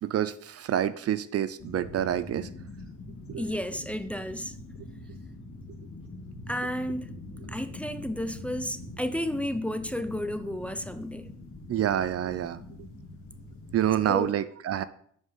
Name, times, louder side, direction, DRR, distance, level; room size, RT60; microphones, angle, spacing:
voice 1, 0.0-2.5 3.3-3.4 11.7-12.6 13.7-14.8, right 11 dB, 55° right, 0.5 m, -27 dB
sound 1, 1.6-14.1, left 2 dB, 50° left, 2.4 m, -44 dB
voice 2, 3.4-4.6 6.5-7.1 7.5-11.3 14.1-14.3, equal, 5° left, 0.6 m, -32 dB
8.0 x 5.3 x 5.6 m
cardioid pair, 90°, 30 cm